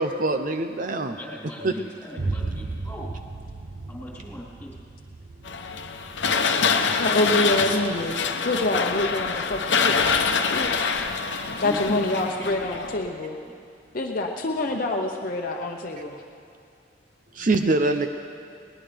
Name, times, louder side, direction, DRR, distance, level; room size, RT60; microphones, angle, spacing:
voice 1, 0.0-1.2 1.6-1.7 17.4-18.1, right 2 dB, 45° right, 7 dB, 0.6 m, -23 dB
voice 2, 1.1-3.1 3.9-4.7 11.6-12.7 17.4-17.5, equal, 10° left, -5 dB, 4.0 m, -38 dB
Boom, 2.2-10.0, right 3 dB, 90° right, 0.7 m, -36 dB
sound 1, 5.5-13.1, left 5 dB, 90° left, 0.9 m, -25 dB
voice 3, 7.0-10.2 10.5-11.1 11.6-13.4 13.9-16.2, left 2 dB, 50° left, 2 dB, 0.9 m, -26 dB
20.0 x 19.0 x 3.5 m, 2.6 s
head